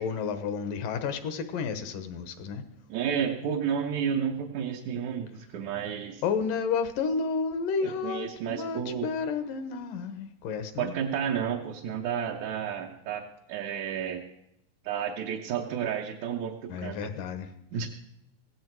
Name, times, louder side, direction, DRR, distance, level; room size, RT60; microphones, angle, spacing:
voice 1, 0.0-2.7 6.2-10.9 16.7-17.5, left 5 dB, 75° left, 10 dB, 2.7 m, -31 dB
voice 2, 2.9-6.2 7.8-9.1 10.8-14.3 14.8-17.0 17.7-17.9, right 8 dB, 65° right, 1 dB, 2.1 m, -31 dB
17.0 x 16.5 x 4.7 m, 0.84 s
omnidirectional pair, 4.0 m